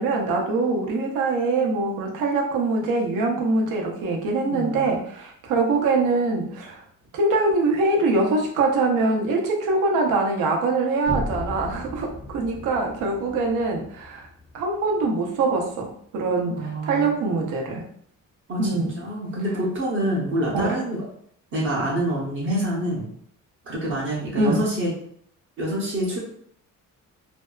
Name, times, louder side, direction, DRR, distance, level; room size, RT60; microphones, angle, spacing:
voice 1, 0.0-6.8 7.1-14.3 14.5-17.8 18.6-18.9 24.4-24.6, right 3 dB, 75° right, 0 dB, 0.7 m, -23 dB
voice 2, 4.5-4.8 16.5-17.2 18.5-21.0 21.5-23.1 23.7-24.9 25.6-26.2, right 1 dB, 40° right, -4 dB, 0.7 m, -26 dB
sound 1, 11.1-15.0, left 1 dB, 10° left, 0.5 m, -35 dB
2.6 x 2.2 x 2.3 m, 0.64 s
cardioid pair, 160°, 32 cm